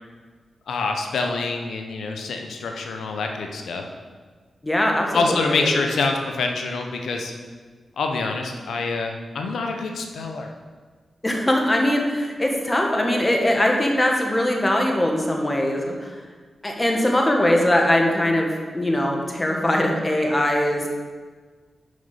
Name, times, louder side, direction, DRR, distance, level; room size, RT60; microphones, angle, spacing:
voice 1, 0.7-3.8 5.1-7.3 8.0-10.5, left 3 dB, 85° left, 3 dB, 0.8 m, -26 dB
voice 2, 4.6-5.8 11.2-16.1 16.6-18.5 18.7-20.9, left 1 dB, 25° left, 1 dB, 1.6 m, -21 dB
6.4 x 5.2 x 5.6 m, 1.5 s
supercardioid pair, 45°, 0 cm